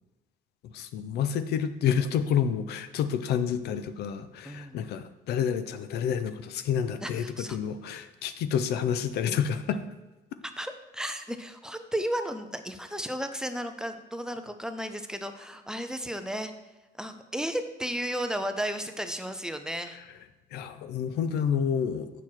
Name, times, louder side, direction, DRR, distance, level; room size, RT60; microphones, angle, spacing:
voice 1, 0.6-9.8 20.5-22.1, left 8 dB, 75° left, 11 dB, 0.6 m, -29 dB
voice 2, 4.4-4.8 7.0-7.6 10.6-16.5 17.0-20.0, equal, 5° right, 8 dB, 0.6 m, -34 dB
7.9 x 6.1 x 4.4 m, 1.1 s
cardioid pair, 110°, 17 cm